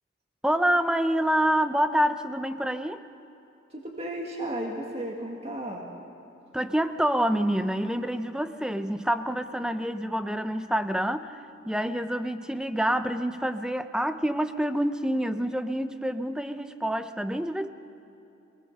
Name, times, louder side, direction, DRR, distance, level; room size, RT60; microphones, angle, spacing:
voice 1, 0.4-3.0 6.5-11.4 11.7-17.7, equal, 5° right, 10 dB, 0.6 m, -27 dB
voice 2, 3.7-5.8, right 1 dB, 30° right, 0 dB, 1.8 m, -34 dB
25.5 x 19.0 x 6.6 m, 2.8 s
head